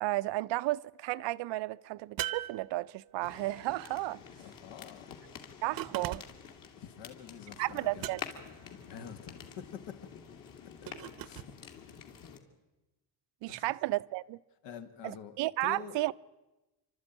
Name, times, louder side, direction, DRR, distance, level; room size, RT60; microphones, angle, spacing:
voice 1, 0.0-4.2 5.6-6.2 7.6-8.2 13.4-14.4 15.0-16.1, right 18 dB, 90° right, 0.7 m, -33 dB
sound 1, 2.2-3.3 5.8-6.5 8.0-8.6 10.9-11.5, right 13 dB, 55° right, 0.8 m, -39 dB
sound 2, 3.2-12.4, left 7 dB, 50° left, 2.5 m, -48 dB
voice 2, 4.4-5.1 6.8-8.1 8.7-10.1 10.8-11.4 11.9-12.0 13.5-13.6 14.6-16.0, left 8 dB, 85° left, 2.1 m, -47 dB
29.0 x 12.5 x 9.3 m
cardioid pair, 170°, 42 cm